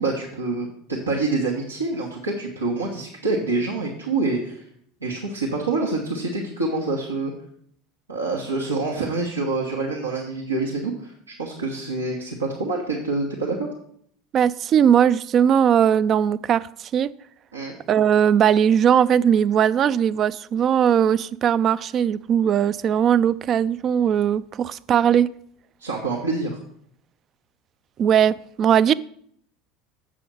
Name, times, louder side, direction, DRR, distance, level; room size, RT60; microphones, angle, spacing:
voice 1, 0.0-4.6 5.0-7.3 8.1-13.7 17.5-17.8 25.8-26.6, right 3 dB, 90° right, 1.1 m, -26 dB
voice 2, 14.3-17.1 17.9-25.3 28.0-28.9, right 8 dB, 40° right, 0.3 m, -19 dB
7.6 x 4.9 x 6.9 m
figure-of-eight pair, 75°, 0 cm